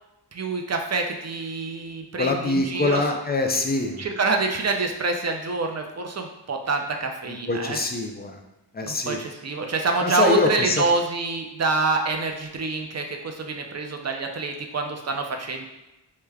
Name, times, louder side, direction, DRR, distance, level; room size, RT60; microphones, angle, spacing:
voice 1, 0.3-3.0 4.0-7.8 8.8-15.7, right 3 dB, 40° right, 3 dB, 0.4 m, -26 dB
voice 2, 2.2-4.1 7.3-8.4 8.7-9.2 10.0-10.8, left 2 dB, 25° left, 3 dB, 0.3 m, -24 dB
4.7 x 2.2 x 2.2 m, 0.98 s
wide cardioid pair, 55°, 43 cm